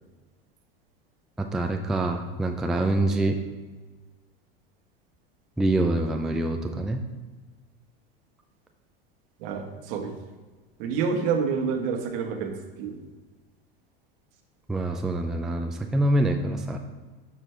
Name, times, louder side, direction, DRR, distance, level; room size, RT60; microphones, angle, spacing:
voice 1, 1.4-3.4 5.6-7.0 14.7-16.8, right 1 dB, ahead, 5 dB, 0.3 m, -25 dB
voice 2, 9.4-10.1 10.8-12.5 12.8-13.0, right 6 dB, 65° right, 4 dB, 1.2 m, -28 dB
7.3 x 6.1 x 3.3 m, 1.3 s
supercardioid pair, 115°, 30 cm